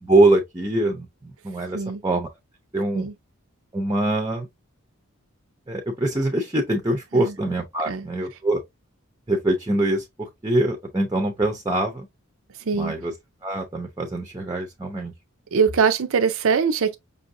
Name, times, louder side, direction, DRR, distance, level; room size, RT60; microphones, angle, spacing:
voice 1, 0.0-2.3 2.7-3.1 3.7-4.5 5.7-8.6 9.3-12.1 12.7-13.1 13.4-15.1, right 2 dB, 15° right, 0.6 m, -23 dB
voice 2, 15.5-17.0, right 6 dB, 65° right, 0.5 m, -22 dB
5.4 x 2.6 x 2.6 m
head